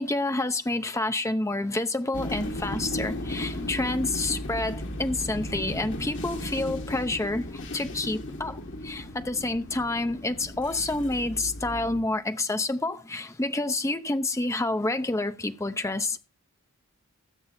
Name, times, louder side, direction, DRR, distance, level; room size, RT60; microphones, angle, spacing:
voice 1, 0.0-16.2, left 2 dB, 15° left, 0.7 m, -28 dB
sound 1, 2.1-12.0, left 1 dB, 55° left, 1.8 m, -35 dB
20.5 x 7.4 x 2.7 m
head